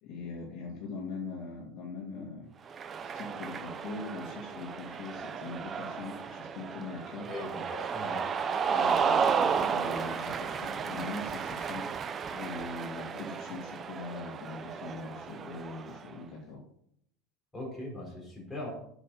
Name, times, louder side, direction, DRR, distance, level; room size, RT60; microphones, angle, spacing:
voice 1, 0.0-2.5 3.0-7.3 8.7-11.8 12.3-16.6, left 3 dB, 45° left, -3 dB, 2.6 m, -41 dB
Cheering, 2.7-16.1, right 6 dB, 25° right, 0.6 m, -33 dB
voice 2, 7.2-8.2 17.5-18.7, left 2 dB, 5° left, -3 dB, 4.1 m, -40 dB
8.3 x 6.9 x 6.9 m, 0.70 s
supercardioid pair, 155°, 0 cm